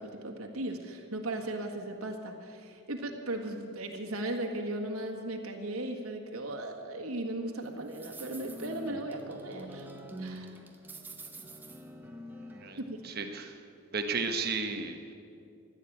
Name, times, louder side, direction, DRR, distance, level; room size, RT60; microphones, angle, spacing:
voice 1, 0.0-9.9 10.2-10.5 12.8-13.1, right 1 dB, 85° right, 2 dB, 1.7 m, -37 dB
sound 1, 7.6-13.4, right 1 dB, 10° right, 1.0 m, -46 dB
voice 2, 13.0-13.6 13.9-15.1, right 4 dB, 45° right, 6 dB, 1.3 m, -34 dB
15.5 x 11.0 x 8.7 m, 2.5 s
head